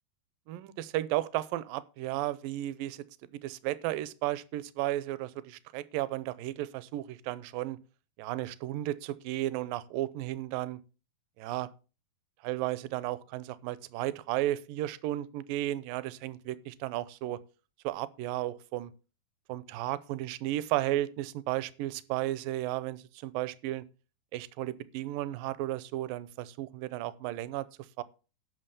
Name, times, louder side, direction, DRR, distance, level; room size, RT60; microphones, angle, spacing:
voice 1, 0.5-3.0 3.4-7.8 8.2-10.8 11.4-11.7 12.4-17.4 17.8-18.9 19.5-23.8 24.3-27.7 28.0-28.1, right 15 dB, 80° right, 2.3 m, -34 dB
11.0 x 6.3 x 6.9 m
omnidirectional pair, 4.2 m